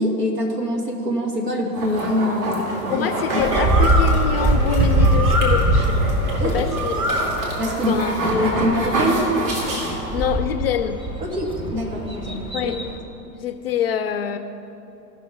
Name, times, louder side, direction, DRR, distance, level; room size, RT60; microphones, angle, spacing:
voice 1, 0.0-3.4 6.4-6.5 7.6-9.2 11.2-12.7, equal, 70° right, 0 dB, 2.1 m, -24 dB
sound 1, 1.7-10.4, right 1 dB, 35° right, 2.6 m, -26 dB
voice 2, 2.9-6.0 6.4-7.3 7.9-8.1 8.5-8.7 10.1-11.0 12.5-12.8 13.4-14.4, left 9 dB, 40° left, 9 dB, 0.5 m, -25 dB
Bird, 3.4-13.0, right 1 dB, 10° right, 1.2 m, -22 dB
17.0 x 6.1 x 4.3 m, 2.9 s
figure-of-eight pair, 95°, 49 cm